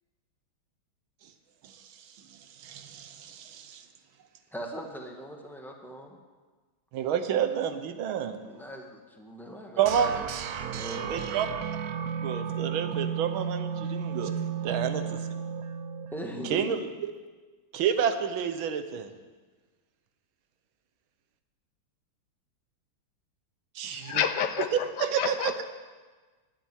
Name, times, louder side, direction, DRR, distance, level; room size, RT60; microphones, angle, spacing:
voice 1, 2.6-3.8 6.9-8.4 9.8-10.2 11.1-11.5 12.2-14.3 14.6-15.2 16.5-17.1 17.7-19.1 23.7-24.2 25.0-25.6, right 8 dB, 85° right, 9 dB, 1.7 m, -29 dB
voice 2, 4.5-6.2 8.4-10.1 10.5-11.3 16.1-16.8, equal, ahead, 1 dB, 1.1 m, -40 dB
sound 1, 9.8-16.8, right 7 dB, 65° right, 1.0 m, -33 dB
voice 3, 23.8-25.6, left 8 dB, 65° left, 9 dB, 1.3 m, -30 dB
12.0 x 7.5 x 9.2 m, 1.4 s
omnidirectional pair, 2.2 m